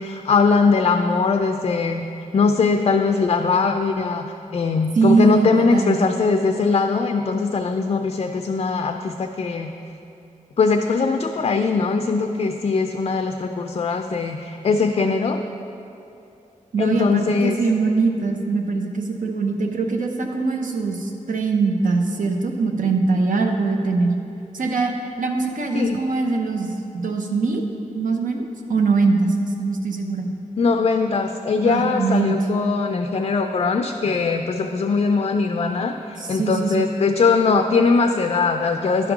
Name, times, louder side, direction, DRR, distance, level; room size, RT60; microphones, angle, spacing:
voice 1, 0.0-2.1 2.3-4.2 4.5-9.7 10.6-15.4 16.8-17.5 25.7-26.0 30.6-39.1, left 4 dB, 45° left, 5 dB, 0.3 m, -21 dB
voice 2, 4.9-6.0 16.7-24.1 24.5-24.9 25.2-27.6 27.9-30.3 31.6-32.3 36.2-36.9, right 4 dB, 75° right, 3 dB, 0.8 m, -22 dB
10.5 x 3.7 x 5.9 m, 2.8 s
wide cardioid pair, 145°, 14 cm